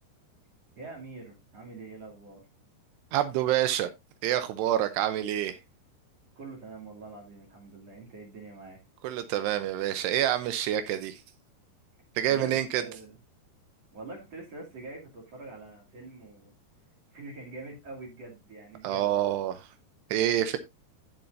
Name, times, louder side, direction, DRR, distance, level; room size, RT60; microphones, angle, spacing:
voice 1, 0.8-2.4 6.4-8.8 12.3-13.2 13.9-16.5 17.1-19.1, right 3 dB, 40° right, 3.4 m, -44 dB
voice 2, 3.1-3.9 4.2-5.6 9.0-11.2 12.2-12.8 18.8-19.7 20.1-20.6, right 12 dB, 80° right, 2.9 m, -27 dB
13.5 x 7.1 x 2.6 m
omnidirectional pair, 4.8 m